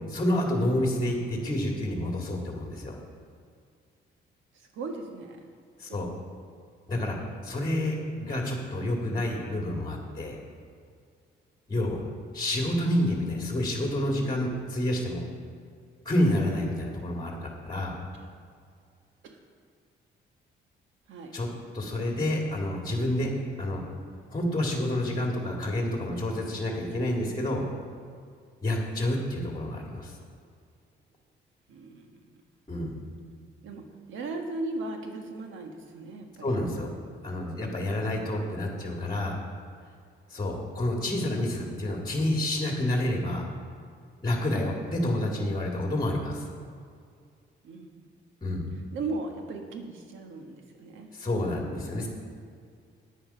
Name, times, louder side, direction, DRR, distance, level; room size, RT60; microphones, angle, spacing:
voice 1, 0.1-3.0 5.8-6.1 6.9-10.4 11.7-12.0 12.3-15.2 16.1-18.0 21.3-21.5 21.7-23.8 24.3-27.6 28.6-30.1 32.7-32.9 36.4-36.9 37.2-39.4 40.3-43.5 44.2-46.5 48.4-48.7 51.1-52.1, left 1 dB, 20° left, 0 dB, 2.0 m, -29 dB
voice 2, 4.5-5.4 19.2-19.4 21.1-21.3 31.7-32.4 33.6-36.6 47.6-48.1 48.9-51.1, right 3 dB, 80° right, 4 dB, 1.5 m, -37 dB
9.2 x 9.0 x 5.6 m, 2.2 s
cardioid pair, 90°, 20 cm